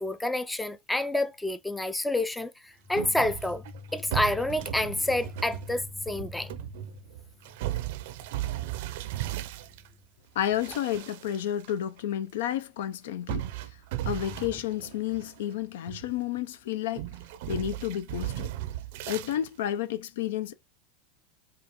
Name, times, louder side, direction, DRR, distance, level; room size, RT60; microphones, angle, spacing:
voice 1, 0.0-3.6 3.9-6.5, left 1 dB, 5° left, 0.4 m, -28 dB
sound 1, 3.0-9.9 10.4-11.7 12.0-12.1 13.3-15.5 15.9-16.4 17.0-19.4, right 14 dB, 65° right, 0.5 m, -36 dB
voice 2, 10.4-13.5 14.1-17.1 17.5-18.5 19.1-20.5, left 11 dB, 80° left, 0.5 m, -31 dB
5.0 x 2.4 x 2.9 m
supercardioid pair, 145°, 0 cm